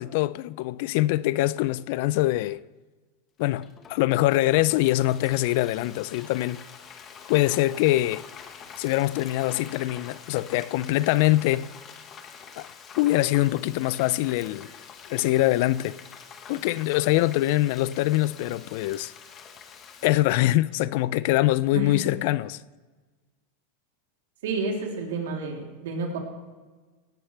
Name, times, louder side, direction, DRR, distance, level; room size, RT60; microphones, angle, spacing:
voice 1, 0.0-2.6 3.4-6.6 7.3-8.2 8.8-11.7 12.6-12.7 13.0-14.7 15.1-16.0 16.5-19.1 20.0-22.6, left 16 dB, 60° left, 0.4 m, -23 dB
Frying (food), 3.4-20.1, left 6 dB, 30° left, 1.3 m, -46 dB
voice 2, 24.4-26.2, right 3 dB, 85° right, 3.2 m, -30 dB
17.5 x 11.5 x 3.4 m
supercardioid pair, 145°, 0 cm